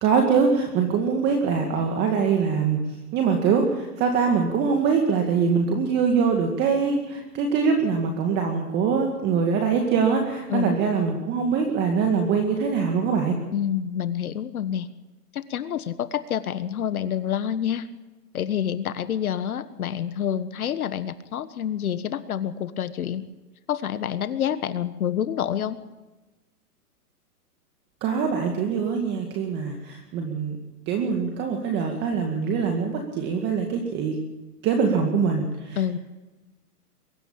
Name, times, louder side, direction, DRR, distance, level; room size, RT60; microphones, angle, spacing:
voice 1, 0.0-2.8 3.1-13.4 28.0-30.6 30.9-34.2 34.6-36.0, right 5 dB, 20° right, 3 dB, 2.1 m, -23 dB
voice 2, 10.5-10.8 13.5-14.9 15.3-17.9 18.3-23.2 23.7-25.8 35.8-36.0, left 9 dB, 65° left, 12 dB, 1.5 m, -27 dB
23.0 x 13.0 x 8.7 m, 1.1 s
hypercardioid pair, 150°, 47 cm